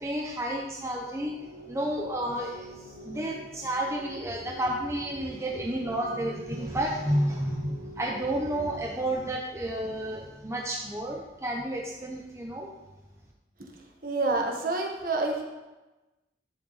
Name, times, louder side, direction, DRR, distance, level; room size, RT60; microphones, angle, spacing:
voice 1, 0.0-1.3 1.7-12.7, right 1 dB, 15° right, 0 dB, 0.8 m, -31 dB
sound 1, 1.0-9.1, right 4 dB, 85° left, 2.6 m, -46 dB
voice 2, 14.0-15.4, right 3 dB, 50° right, 1 dB, 1.6 m, -28 dB
11.5 x 7.6 x 4.1 m, 1.1 s
head